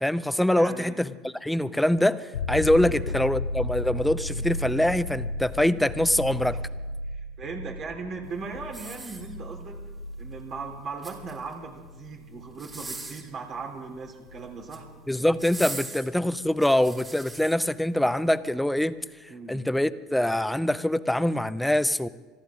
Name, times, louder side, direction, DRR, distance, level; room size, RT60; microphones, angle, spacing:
voice 1, 0.0-6.6 15.1-18.9 19.5-22.1, left 1 dB, 5° left, 15 dB, 0.7 m, -24 dB
voice 2, 0.5-1.0 2.8-3.1 6.5-6.6 7.1-9.8 10.2-14.9 19.3-19.7, right 4 dB, 45° right, 0 dB, 4.1 m, -38 dB
sound 1, 2.3-15.8 18.6-18.7, left 2 dB, 80° left, 0.5 m, -35 dB
sound 2, 8.7-9.7 10.8-11.6 12.5-13.3 14.4-14.9 15.4-17.6 18.1-18.3, right 2 dB, 20° right, 3.5 m, -40 dB
26.0 x 14.0 x 3.8 m, 1.3 s
hypercardioid pair, 70°, 0 cm